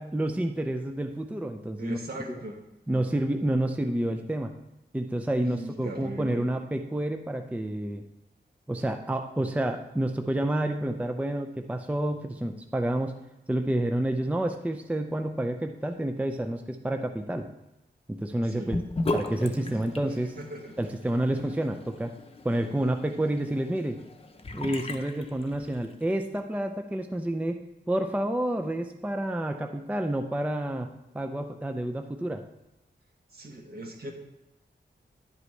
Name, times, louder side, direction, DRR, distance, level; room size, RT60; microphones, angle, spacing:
voice 1, 0.0-2.0 2.9-4.5 4.9-8.0 8.7-13.1 13.5-17.5 18.1-18.8 19.1-20.4 20.8-22.1 22.4-24.0 24.5-27.6 27.9-30.9 31.1-32.4, right 1 dB, 5° right, 5 dB, 0.4 m, -29 dB
voice 2, 1.8-2.6 5.4-6.4 18.4-18.7 19.6-19.9 20.4-20.7 33.3-34.1, right 1 dB, 55° right, 1 dB, 1.6 m, -39 dB
Sink (filling or washing) / Bathtub (filling or washing), 18.7-26.0, left 2 dB, 30° left, 0.7 m, -37 dB
10.5 x 8.1 x 3.2 m, 0.94 s
wide cardioid pair, 140°, 19 cm